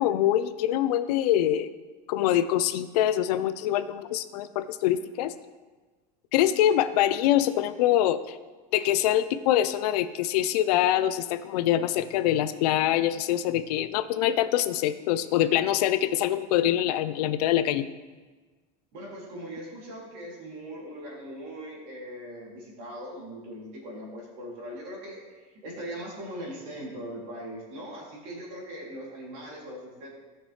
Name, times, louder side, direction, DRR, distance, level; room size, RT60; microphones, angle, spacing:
voice 1, 0.0-1.7 2.1-5.3 6.3-8.4 8.7-17.9, left 12 dB, 80° left, 13 dB, 0.6 m, -24 dB
voice 2, 18.9-30.1, equal, 50° right, -4 dB, 3.0 m, -40 dB
16.0 x 5.9 x 3.3 m, 1.3 s
cardioid pair, 175°, 20 cm